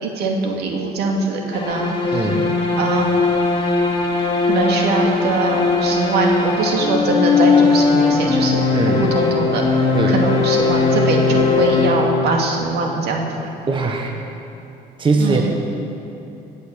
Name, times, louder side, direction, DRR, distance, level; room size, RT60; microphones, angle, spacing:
voice 1, 0.0-2.3 2.8-3.1 4.4-9.8 10.1-13.3 15.2-15.6, right 3 dB, 75° right, 1 dB, 2.3 m, -22 dB
sound 1, 1.5-12.7, left 4 dB, 30° left, 2.6 m, -19 dB
voice 2, 2.1-2.5 8.7-9.0 9.9-10.2 13.7-14.1 15.0-15.4, right 3 dB, 30° right, 2 dB, 1.4 m, -20 dB
17.5 x 8.3 x 6.6 m, 3.0 s
cardioid pair, 110°, 17 cm